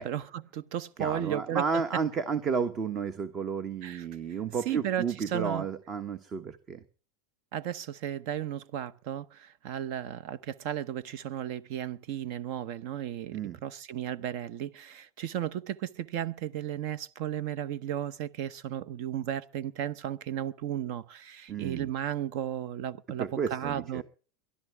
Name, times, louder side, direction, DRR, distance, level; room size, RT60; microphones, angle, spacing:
voice 1, 0.0-1.8 3.8-4.1 4.6-5.7 7.5-24.0, right 10 dB, 60° right, 0.9 m, -34 dB
voice 2, 1.0-6.8 13.3-13.6 21.5-21.9 23.2-24.0, right 6 dB, 35° right, 1.2 m, -32 dB
22.5 x 12.5 x 3.5 m
hypercardioid pair, 105°, 0 cm